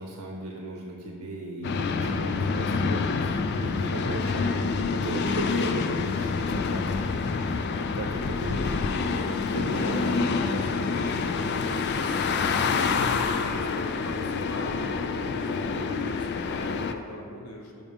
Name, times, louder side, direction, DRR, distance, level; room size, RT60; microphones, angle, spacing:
voice 1, 0.0-7.4 7.8-9.2 9.5-10.0, right 2 dB, 90° right, 0 dB, 0.7 m, -37 dB
voice 2, 1.6-2.0 7.4-7.8 9.4-17.8, left 1 dB, 90° left, 1 dB, 1.0 m, -40 dB
sound 1, 1.6-16.9, left 4 dB, 50° left, 0.3 m, -27 dB
5.3 x 5.1 x 5.0 m, 2.2 s
head